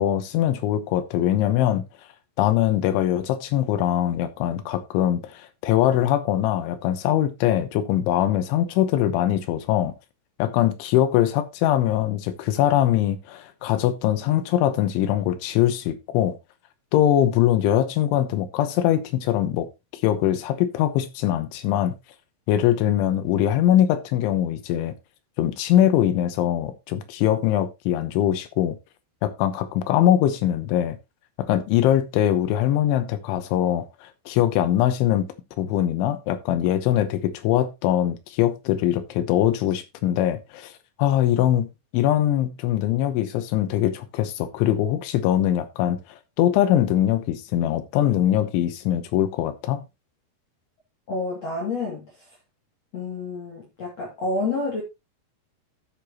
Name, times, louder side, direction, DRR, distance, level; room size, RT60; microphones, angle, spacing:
voice 1, 0.0-1.8 2.4-9.9 10.4-16.4 16.9-19.7 20.0-21.9 22.5-24.9 25.4-28.8 29.2-31.0 31.4-35.3 35.6-40.7 41.0-41.7 41.9-46.0 46.4-49.8, left 12 dB, 75° left, 3.3 m, -22 dB
voice 2, 51.1-52.3 52.9-54.8, left 3 dB, 40° left, 2.8 m, -29 dB
13.0 x 6.8 x 2.9 m
omnidirectional pair, 5.7 m